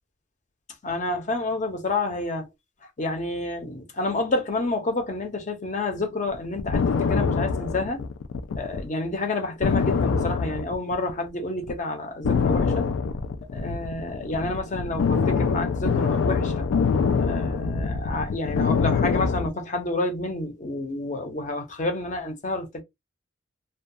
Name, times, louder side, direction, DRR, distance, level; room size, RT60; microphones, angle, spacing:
voice 1, 0.8-2.5 3.0-8.0 8.6-12.8 13.5-16.7 17.2-22.8, left 2 dB, 40° left, 0.6 m, -29 dB
sound 1, 6.3-8.8 9.1-9.2 9.6-11.3 11.6-11.8 12.2-19.5, left 5 dB, 90° left, 0.4 m, -24 dB
2.2 x 2.2 x 2.6 m
head